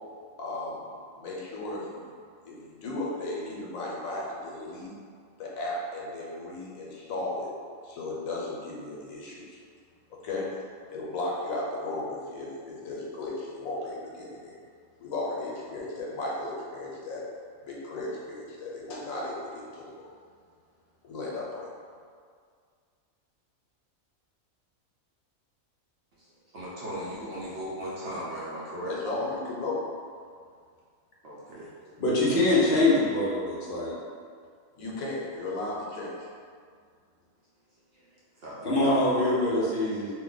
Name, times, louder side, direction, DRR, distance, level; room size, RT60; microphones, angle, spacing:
voice 1, 0.4-0.9 1.2-2.0 2.4-4.9 5.4-7.5 7.8-9.6 10.1-10.5 10.9-14.6 15.0-17.2 17.6-20.1 21.0-21.7 28.8-29.8 31.9-32.0 34.8-36.3, left 2 dB, 90° left, -4 dB, 1.1 m, -35 dB
voice 2, 26.5-28.9 31.2-31.7 37.9-38.0 38.4-39.1, equal, 60° right, -7 dB, 0.7 m, -37 dB
voice 3, 32.0-33.9 38.6-40.1, left 2 dB, 50° left, -7 dB, 0.7 m, -24 dB
2.5 x 2.1 x 3.8 m, 2.1 s
omnidirectional pair, 1.4 m